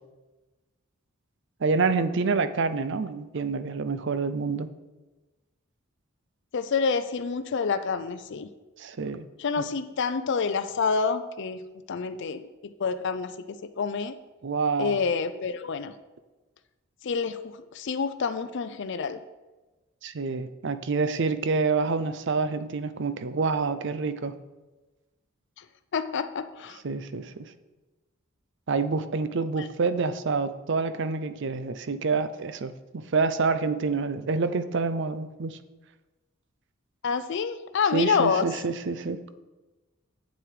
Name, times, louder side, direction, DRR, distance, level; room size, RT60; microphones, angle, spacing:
voice 1, 1.6-4.7 8.8-9.3 9.6-9.7 14.4-15.0 20.0-24.4 26.8-27.5 28.7-35.6 37.9-39.2, right 4 dB, 60° right, 12 dB, 0.5 m, -27 dB
voice 2, 6.5-8.5 9.4-11.6 11.9-14.2 14.8-15.9 17.0-19.2 25.6-25.7 25.9-26.8 29.6-29.7 37.0-38.5, left 5 dB, 55° left, 11 dB, 0.4 m, -28 dB
7.8 x 7.4 x 4.9 m, 1.2 s
head